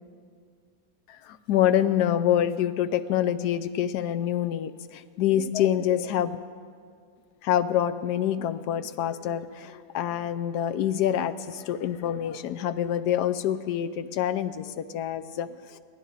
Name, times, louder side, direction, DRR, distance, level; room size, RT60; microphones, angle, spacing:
voice 1, 1.1-6.4 7.4-15.8, left 10 dB, 75° left, 12 dB, 1.2 m, -26 dB
22.5 x 16.0 x 4.1 m, 2.1 s
omnidirectional pair, 1.8 m